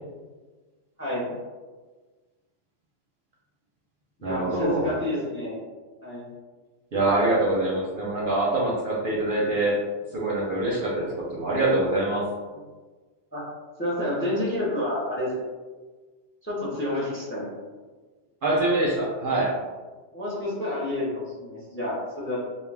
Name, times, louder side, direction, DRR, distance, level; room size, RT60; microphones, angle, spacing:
voice 1, 1.0-1.3 4.2-5.6 6.0-6.2 10.9-11.1 12.5-12.6 13.3-13.4 13.8-15.3 16.4-17.5 20.1-22.4, left 1 dB, 15° left, -6 dB, 0.5 m, -29 dB
voice 2, 4.2-4.9 6.9-9.8 10.1-12.2 18.4-19.5, right 2 dB, 60° right, -4 dB, 0.6 m, -24 dB
2.4 x 2.2 x 3.2 m, 1.3 s
omnidirectional pair, 1.2 m